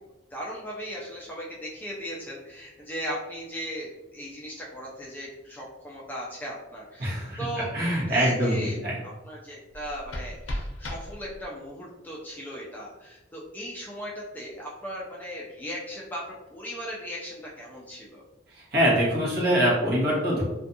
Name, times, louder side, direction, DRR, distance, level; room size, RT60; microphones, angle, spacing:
voice 1, 0.3-7.7 8.1-8.8 9.2-16.2 16.5-18.2, equal, 10° left, -4 dB, 0.3 m, -37 dB
voice 2, 7.0-8.5 8.8-9.0 18.7-20.4, equal, 50° right, -6 dB, 1.1 m, -24 dB
sound 1, 9.7-11.7, left 1 dB, 70° left, 0.5 m, -36 dB
2.5 x 2.3 x 2.6 m, 1.0 s
head